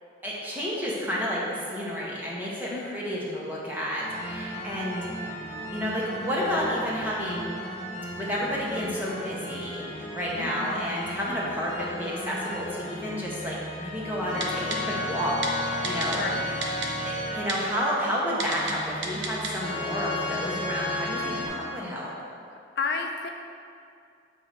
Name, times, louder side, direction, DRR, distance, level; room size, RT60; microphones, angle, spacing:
voice 1, 0.2-5.1 5.7-7.5 8.2-16.3 17.1-22.1, equal, 10° right, -6 dB, 1.0 m, -31 dB
voice 2, 2.7-3.0 10.4-10.8 16.1-16.6 22.8-23.3, left 4 dB, 55° left, 3 dB, 0.4 m, -32 dB
sound 1, 4.0-21.5, left 1 dB, 35° left, 0.9 m, -34 dB
Typing, 14.4-14.8 15.4-15.5 15.8-16.2 16.6-16.9 17.5-17.6 18.4-18.7 19.0-19.5 19.8-19.9, right 4 dB, 65° right, 0.8 m, -31 dB
7.7 x 3.7 x 4.3 m, 2.4 s
head